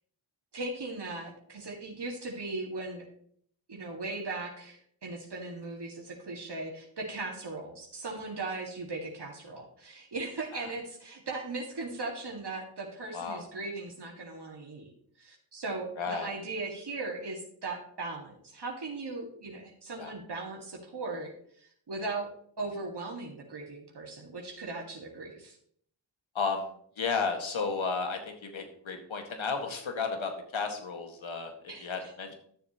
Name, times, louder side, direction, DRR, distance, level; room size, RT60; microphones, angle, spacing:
voice 1, 0.5-3.0 3.7-14.9 15.2-21.3 21.6-22.3 22.6-25.6 31.7-32.1, right 3 dB, 55° right, 0 dB, 2.1 m, -38 dB
voice 2, 16.0-16.3 20.0-20.1 26.4-26.7 27.0-31.5 31.8-32.3, left 5 dB, 70° left, 4 dB, 2.0 m, -33 dB
12.5 x 7.0 x 3.0 m, 0.62 s
supercardioid pair, 40°, 49 cm